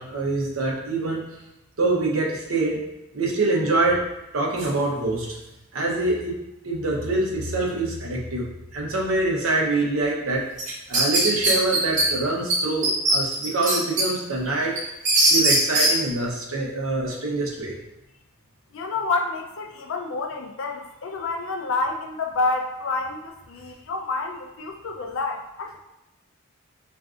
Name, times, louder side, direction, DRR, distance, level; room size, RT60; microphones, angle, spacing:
voice 1, 0.0-1.3 1.8-2.8 3.1-4.0 4.3-5.4 5.7-6.4 6.6-8.4 8.7-10.4 10.9-14.8 15.3-17.8, right 2 dB, 75° right, -2 dB, 0.7 m, -25 dB
sound 1, 10.6-12.1 12.5-12.6 12.8-14.0 14.5-15.9, right 1 dB, 35° right, 0.8 m, -19 dB
voice 2, 18.7-25.8, left 3 dB, 65° left, 3 dB, 0.4 m, -28 dB
3.6 x 2.5 x 2.4 m, 0.92 s
head